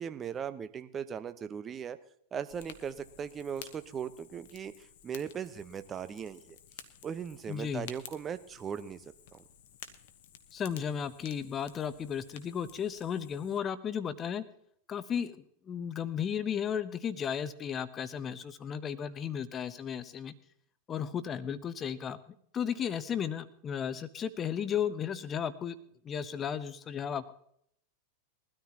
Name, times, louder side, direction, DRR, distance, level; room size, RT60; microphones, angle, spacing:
voice 1, 0.0-2.0 2.3-6.6 7.0-9.0 9.3-9.4, right 7 dB, 25° right, 11 dB, 1.0 m, -38 dB
Fire, 2.5-13.6, left 9 dB, 55° left, 1.2 m, -53 dB
voice 2, 7.5-7.9 10.5-14.4 14.9-20.3 20.9-25.8 26.0-27.3, left 8 dB, 25° left, 15 dB, 1.0 m, -34 dB
22.0 x 13.0 x 2.9 m, 0.67 s
figure-of-eight pair, 90°, 0 cm